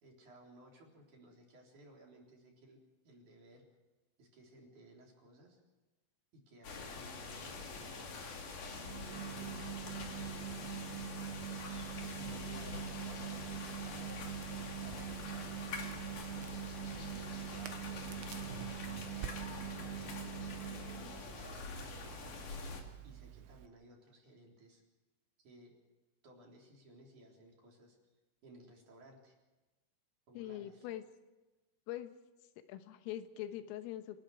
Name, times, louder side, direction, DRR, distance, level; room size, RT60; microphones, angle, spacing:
voice 1, 0.0-2.8 3.0-3.6 4.2-5.6 6.3-8.2 8.8-10.8 12.2-14.3 14.8-16.1 16.7-20.0 20.6-24.8 25.4-25.8 26.2-28.0 28.4-29.4 30.3-30.9, right 1 dB, 40° right, -1 dB, 4.6 m, -59 dB
sound 1, 6.6-22.8, left 4 dB, 45° left, 3.6 m, -45 dB
sound 2, 8.7-21.3, right 11 dB, 60° right, 3.3 m, -44 dB
Crackle, 14.1-23.7, right 11 dB, 80° right, 3.7 m, -51 dB
voice 2, 30.4-31.0 31.9-32.2 32.7-34.2, left 12 dB, 85° left, 9 dB, 3.9 m, -43 dB
29.0 x 19.0 x 4.9 m, 1.1 s
omnidirectional pair, 5.8 m